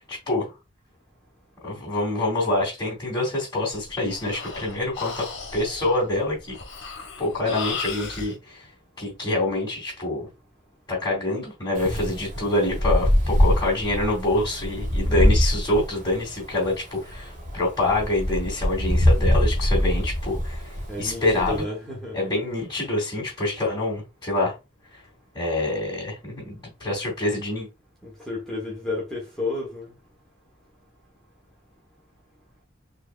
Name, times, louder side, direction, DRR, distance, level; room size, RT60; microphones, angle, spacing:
voice 1, 0.1-0.5 1.6-5.3 5.5-6.6 7.2-8.7 9.0-10.3 10.9-21.6 22.1-24.6 24.9-25.0 25.3-27.7, left 2 dB, 20° left, 2.3 m, -26 dB
Breathing, 3.7-8.3, left 5 dB, 65° left, 1.2 m, -36 dB
Wind, 11.8-21.6, equal, 40° right, 1.4 m, -23 dB
voice 2, 20.9-22.2 28.0-29.9, left 2 dB, 5° left, 1.2 m, -31 dB
4.5 x 3.5 x 2.4 m
head